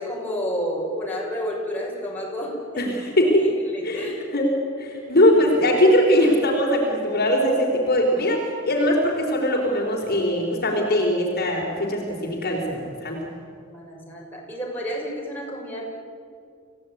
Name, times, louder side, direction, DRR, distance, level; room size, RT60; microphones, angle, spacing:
voice 1, 0.0-4.2 13.7-15.8, equal, 10° left, -3 dB, 6.2 m, -30 dB
voice 2, 2.8-3.4 3.8-4.0 4.3-4.5 4.8-13.2, left 1 dB, 50° left, 0 dB, 4.0 m, -21 dB
27.5 x 16.5 x 9.4 m, 2.2 s
head